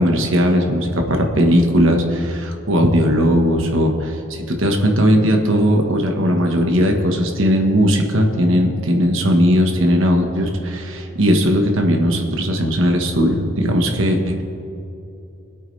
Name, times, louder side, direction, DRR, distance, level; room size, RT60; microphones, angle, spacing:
voice 1, 0.0-14.4, equal, 65° right, 3 dB, 1.4 m, -17 dB
22.5 x 8.5 x 3.4 m, 2.8 s
head